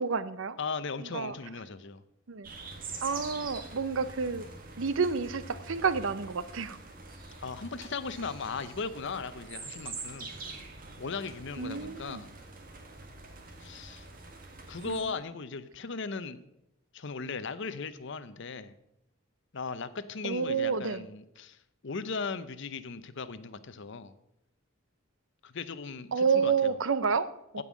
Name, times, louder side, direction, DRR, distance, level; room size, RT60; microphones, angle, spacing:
voice 1, 0.0-0.6 1.0-1.3 2.3-2.5 3.0-4.5 4.8-6.8 11.6-12.2 14.8-15.0 20.2-21.0 26.1-27.6, right 5 dB, 65° right, 15 dB, 0.6 m, -29 dB
voice 2, 0.6-2.0 7.4-10.3 11.0-12.3 13.6-14.1 14.7-16.4 16.9-18.7 19.5-21.6 21.8-24.1 25.4-26.7 27.6-27.7, left 4 dB, 60° left, 13 dB, 0.7 m, -37 dB
sound 1, 2.4-15.0, right 3 dB, 45° right, 1.8 m, -45 dB
15.5 x 5.5 x 6.2 m, 0.85 s
head